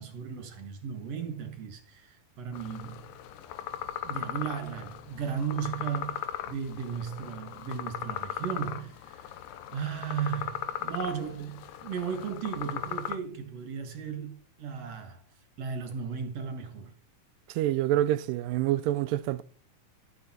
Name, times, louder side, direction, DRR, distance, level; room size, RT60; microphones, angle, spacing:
voice 1, 0.0-3.0 4.0-9.3 9.7-15.2 15.6-16.9, right 7 dB, 55° right, 2.6 m, -35 dB
sound 1, 2.5-13.2, left 11 dB, 80° left, 2.5 m, -38 dB
voice 2, 17.6-19.4, right 13 dB, 90° right, 2.4 m, -27 dB
12.5 x 9.7 x 4.5 m
omnidirectional pair, 3.8 m